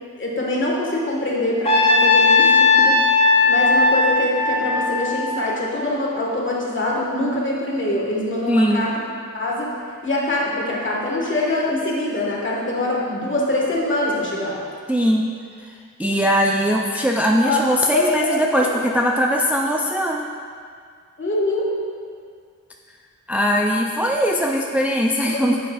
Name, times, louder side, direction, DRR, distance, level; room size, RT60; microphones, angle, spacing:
voice 1, 0.2-3.0 3.5-9.0 9.3-9.7 10.0-14.6 17.4-17.6 17.9-18.6 21.2-21.6 24.6-24.7 25.2-25.4, left 1 dB, 40° left, -3 dB, 1.7 m, -24 dB
Trumpet, 1.7-5.9, left 3 dB, 20° left, 1.2 m, -17 dB
voice 2, 8.5-8.9 14.9-15.3 16.0-20.2 23.3-25.6, equal, 5° right, 0 dB, 0.4 m, -20 dB
9.7 x 6.9 x 2.4 m, 2.2 s
wide cardioid pair, 75°, 31 cm